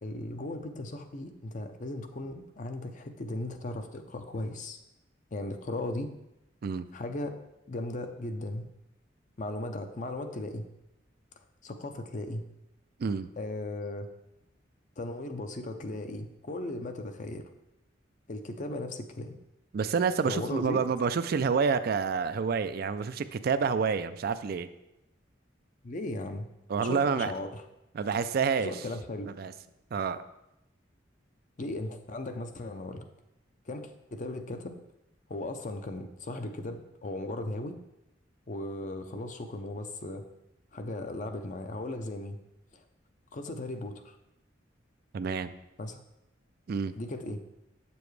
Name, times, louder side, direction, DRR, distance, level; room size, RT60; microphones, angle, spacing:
voice 1, 0.0-4.8 5.3-6.1 6.9-7.4 7.7-8.7 9.4-10.6 11.4-12.4 13.4-14.1 15.0-17.4 18.3-19.4 20.3-20.8 25.8-26.5 26.8-27.6 28.6-29.3 31.6-33.1 33.7-34.8 35.3-37.8 38.5-40.2 40.7-42.4 42.7-42.8 43.3-44.2 45.8-46.0 47.0-47.4, left 2 dB, 45° left, 7 dB, 0.6 m, -37 dB
voice 2, 19.7-24.7 26.7-27.3 27.9-28.7 29.4-29.5 29.9-30.2 45.1-45.5 46.7-46.9, right 5 dB, 55° right, 12 dB, 0.3 m, -28 dB
7.8 x 6.9 x 3.2 m, 0.89 s
head